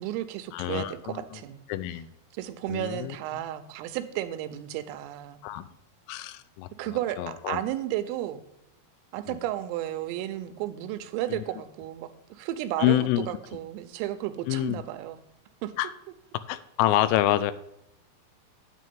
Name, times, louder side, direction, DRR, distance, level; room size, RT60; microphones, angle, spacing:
voice 1, 0.0-1.6 2.3-5.4 6.8-8.4 9.1-15.2 15.6-15.7, right 13 dB, 85° right, 11 dB, 3.2 m, -33 dB
voice 2, 0.5-1.2 1.7-2.1 2.7-3.2 5.4-5.7 6.1-6.7 7.2-7.6 9.3-9.4 11.3-11.4 12.8-13.3 14.5-14.8 15.8-15.9 16.5-17.5, left 14 dB, 85° left, 14 dB, 3.2 m, -27 dB
9.3 x 9.2 x 3.5 m, 0.81 s
omnidirectional pair, 6.0 m